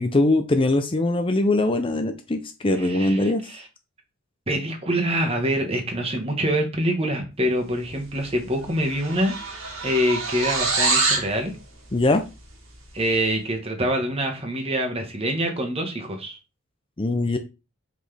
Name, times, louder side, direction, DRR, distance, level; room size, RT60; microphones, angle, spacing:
voice 1, 0.0-3.4 11.9-12.2 17.0-17.4, left 2 dB, 25° left, 8 dB, 0.5 m, -21 dB
voice 2, 2.8-3.6 4.5-9.4 9.8-11.5 12.9-16.4, equal, 30° right, 3 dB, 1.4 m, -25 dB
sound 1, 8.1-8.4 8.6-11.3, right 3 dB, 80° right, 2.1 m, -25 dB
5.9 x 5.2 x 3.4 m, 0.28 s
head